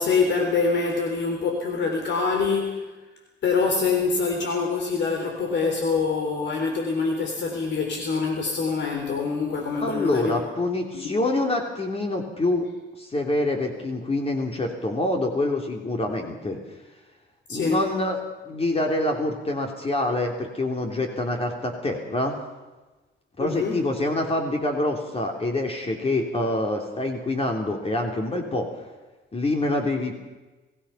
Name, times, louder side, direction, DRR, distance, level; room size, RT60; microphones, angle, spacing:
voice 1, 0.0-2.9 3.4-10.4 10.9-11.1 17.5-17.8 23.4-23.8, left 4 dB, 65° left, 3 dB, 3.5 m, -25 dB
voice 2, 9.8-12.7 13.0-16.6 17.5-18.2 18.4-22.4 23.4-28.7 29.3-30.1, left 2 dB, 30° left, 2 dB, 3.3 m, -26 dB
26.5 x 17.5 x 5.8 m, 1.2 s
cardioid pair, 90°, 20 cm